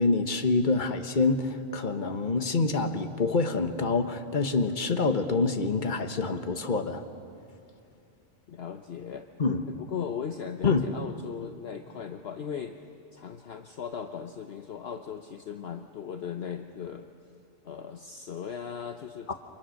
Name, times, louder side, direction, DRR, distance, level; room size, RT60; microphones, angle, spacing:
voice 1, 0.0-7.0 9.4-9.6 10.6-10.9 19.3-19.4, left 3 dB, 40° left, 8 dB, 1.3 m, -26 dB
voice 2, 8.5-9.3 9.7-12.8 13.1-17.1 17.6-19.3, left 7 dB, 60° left, 6 dB, 1.1 m, -38 dB
29.5 x 26.0 x 6.5 m, 2.5 s
omnidirectional pair, 1.3 m